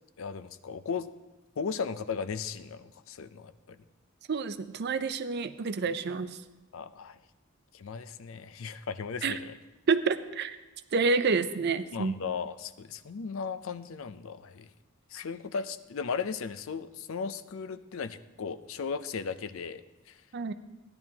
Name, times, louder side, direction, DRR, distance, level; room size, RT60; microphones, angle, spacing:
voice 1, 0.2-1.1 1.6-3.8 6.7-7.2 7.7-9.6 11.9-14.7 15.1-19.8 20.1-20.2, left 5 dB, 65° left, 13 dB, 0.5 m, -36 dB
voice 2, 4.3-6.3 9.2-9.4 9.9-10.6 10.9-12.1 20.3-20.5, right 4 dB, 50° right, 11 dB, 0.5 m, -28 dB
16.0 x 10.5 x 2.9 m, 1.1 s
head